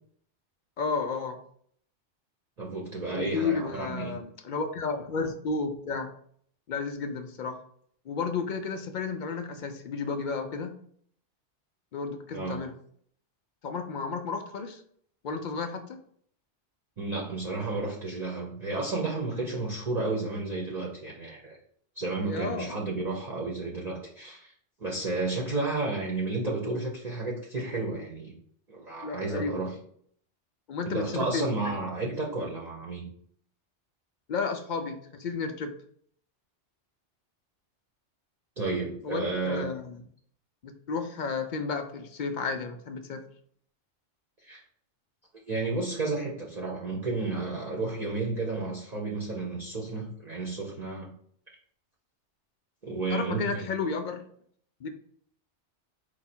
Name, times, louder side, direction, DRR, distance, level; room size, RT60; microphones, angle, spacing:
voice 1, 0.8-1.4 3.1-6.1 6.7-7.6 8.1-10.8 11.9-12.7 13.6-14.8 15.2-16.0 22.2-22.7 29.0-29.8 30.7-31.7 34.3-35.7 39.0-40.0 40.6-43.2 53.1-54.2 54.8-54.9, left 4 dB, 60° left, 6 dB, 0.5 m, -32 dB
voice 2, 2.6-4.1 12.3-12.6 17.0-21.6 22.0-24.5 24.8-28.3 28.7-29.7 30.9-33.1 38.6-39.7 44.4-44.6 45.5-51.1 52.8-53.7, right 3 dB, 40° right, -3 dB, 0.8 m, -32 dB
4.7 x 2.3 x 4.3 m, 0.62 s
omnidirectional pair, 1.2 m